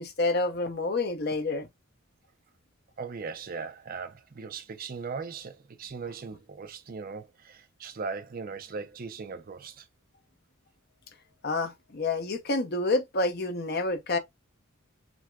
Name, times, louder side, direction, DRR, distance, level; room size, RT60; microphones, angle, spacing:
voice 1, 0.0-1.7 11.4-14.2, left 2 dB, 50° left, 0.8 m, -28 dB
voice 2, 3.0-9.9, right 5 dB, 45° right, 0.5 m, -39 dB
6.0 x 2.2 x 2.3 m
head